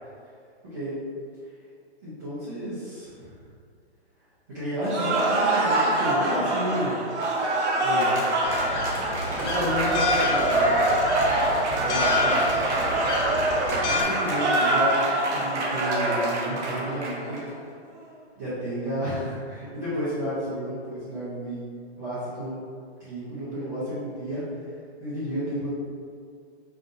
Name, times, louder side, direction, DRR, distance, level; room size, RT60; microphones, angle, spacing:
voice 1, 2.0-3.3 4.5-7.0 7.8-8.1 9.2-10.7 11.8-12.4 13.6-14.9 15.3-17.4 18.4-21.6 22.0-22.6 23.0-24.4 25.0-25.7, equal, 15° right, -13 dB, 0.5 m, -31 dB
Cheering / Applause, 4.8-17.4, right 2 dB, 85° right, 0.9 m, -24 dB
sound 1, 8.4-14.0, left 4 dB, 85° left, 0.9 m, -29 dB
5.5 x 2.6 x 2.5 m, 2.2 s
hypercardioid pair, 170°, 34 cm